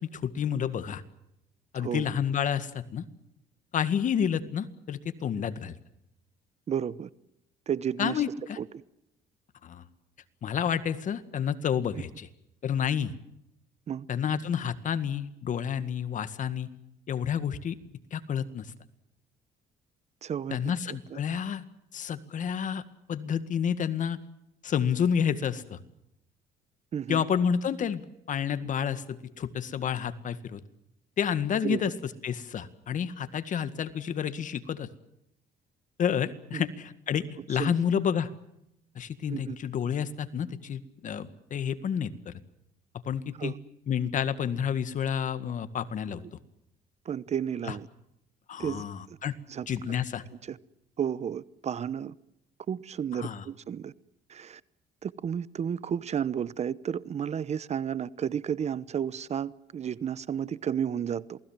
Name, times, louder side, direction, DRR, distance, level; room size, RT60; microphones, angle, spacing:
voice 1, 0.0-1.0 1.7-3.0 3.7-5.7 8.0-8.6 9.6-9.8 10.4-12.3 12.6-13.1 14.1-16.7 17.1-17.8 18.1-18.7 20.5-21.6 21.9-22.8 23.1-24.2 24.6-25.8 27.1-28.0 28.3-30.6 31.2-34.9 36.0-38.3 39.0-42.3 43.1-43.5 43.9-46.2 47.7-47.8 48.5-49.3 49.7-50.2 53.1-53.4, left 8 dB, 50° left, 1.9 m, -30 dB
voice 2, 1.7-2.1 6.7-7.1 7.7-8.2 8.6-8.7 13.9-14.1 20.2-21.2 26.9-27.2 31.6-31.8 36.5-36.6 37.6-37.8 39.3-39.6 43.4-43.6 47.0-47.9 48.6-49.2 49.5-49.7 50.5-50.6 51.0-52.1 52.7-53.9 54.3-54.6 55.0-61.4, right 8 dB, 40° right, 0.9 m, -32 dB
28.0 x 19.5 x 7.5 m
cardioid pair, 110°, 17 cm